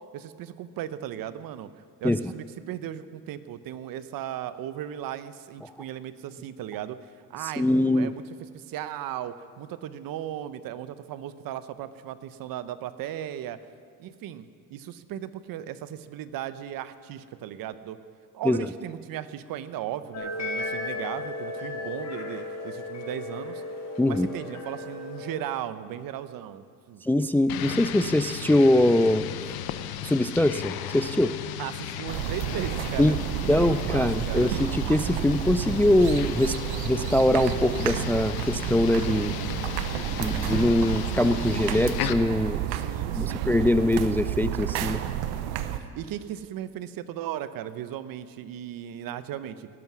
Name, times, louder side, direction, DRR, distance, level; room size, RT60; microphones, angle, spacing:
voice 1, 0.1-1.7 2.0-7.0 7.3-8.2 8.5-13.6 14.0-18.0 18.3-23.6 24.1-27.0 31.6-34.5 42.7-43.6 45.7-49.7, right 11 dB, 60° right, 13 dB, 0.9 m, -36 dB
voice 2, 7.6-8.1 18.5-18.7 24.0-24.3 27.0-29.2 30.0-31.3 33.0-33.2 33.5-36.5 36.8-39.3 40.2-42.6 43.2-45.0, left 1 dB, 5° left, 13 dB, 0.3 m, -23 dB
sound 1, 20.1-25.4, left 2 dB, 45° left, 4.3 m, -35 dB
sound 2, 27.5-42.1, left 11 dB, 70° left, 1.0 m, -35 dB
sound 3, 32.1-45.8, right 11 dB, 85° right, 0.9 m, -30 dB
18.5 x 11.0 x 6.1 m, 2.3 s
supercardioid pair, 85°, 38 cm